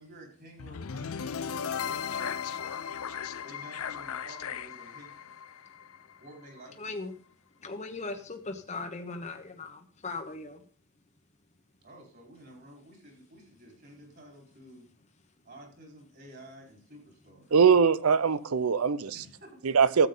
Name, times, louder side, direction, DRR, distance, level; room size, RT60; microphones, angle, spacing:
voice 1, 0.0-2.3 3.4-5.3 6.2-6.9 11.8-14.9 15.4-17.5 19.1-19.8, right 1 dB, 50° right, 4.5 m, -51 dB
sound 1, 0.6-6.7, left 7 dB, 80° left, 0.5 m, -36 dB
voice 2, 6.8-7.1 7.6-10.6, left 3 dB, 35° left, 1.0 m, -38 dB
voice 3, 17.5-19.2 19.6-20.1, right 6 dB, 80° right, 0.6 m, -22 dB
13.5 x 8.2 x 3.9 m
head